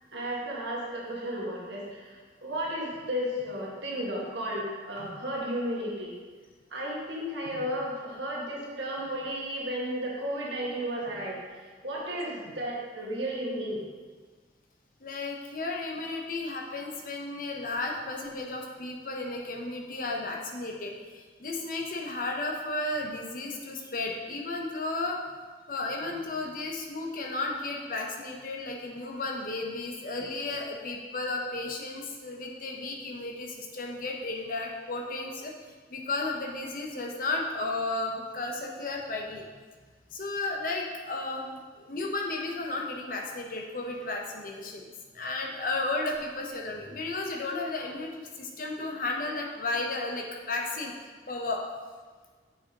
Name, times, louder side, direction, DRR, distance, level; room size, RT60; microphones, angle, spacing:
voice 1, 0.1-6.1 6.7-13.8, equal, 85° right, -4 dB, 1.5 m, -33 dB
voice 2, 15.0-39.5 40.1-44.9 45.1-50.9 51.3-51.6, left 2 dB, 50° left, 1 dB, 0.8 m, -34 dB
7.2 x 5.0 x 2.9 m, 1.5 s
head